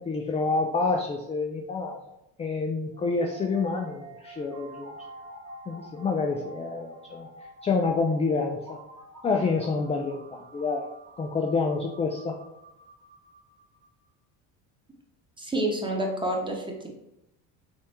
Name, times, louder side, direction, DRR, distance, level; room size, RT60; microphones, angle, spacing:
voice 1, 0.0-2.0 2.4-4.9 5.7-7.3 7.6-8.8 9.2-10.8 11.2-12.4, left 4 dB, 20° left, 2 dB, 0.3 m, -28 dB
sound 1, 2.9-13.9, right 2 dB, 50° right, 1.2 m, -48 dB
voice 2, 15.4-16.9, right 1 dB, 10° right, 0 dB, 0.9 m, -28 dB
3.4 x 3.4 x 2.8 m, 0.86 s
supercardioid pair, 80°, 40 cm